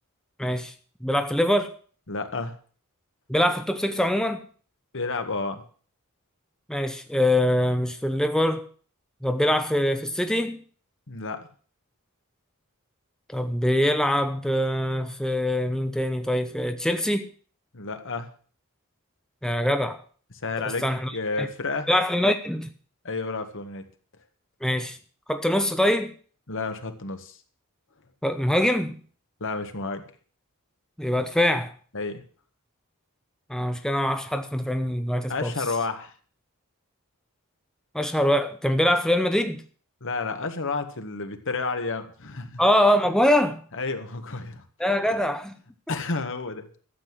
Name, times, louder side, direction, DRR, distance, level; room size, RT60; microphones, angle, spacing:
voice 1, 0.4-0.7 1.0-1.7 3.3-4.4 6.7-8.7 9.2-10.6 13.3-17.3 19.4-20.0 20.6-21.1 21.4-21.5 21.9-22.7 24.6-25.0 25.3-26.1 28.2-28.9 31.0-31.7 33.5-35.5 37.9-39.6 42.6-43.6 44.8-45.6, left 1 dB, 5° left, 0.8 m, -23 dB
voice 2, 2.1-2.5 4.9-5.6 11.1-11.5 17.7-18.3 20.4-20.9 21.1-21.9 23.0-23.8 26.5-27.4 29.4-30.1 31.9-32.2 35.3-36.1 40.0-42.6 43.7-44.6 45.9-46.7, left 3 dB, 60° left, 1.7 m, -30 dB
13.0 x 7.9 x 7.7 m
head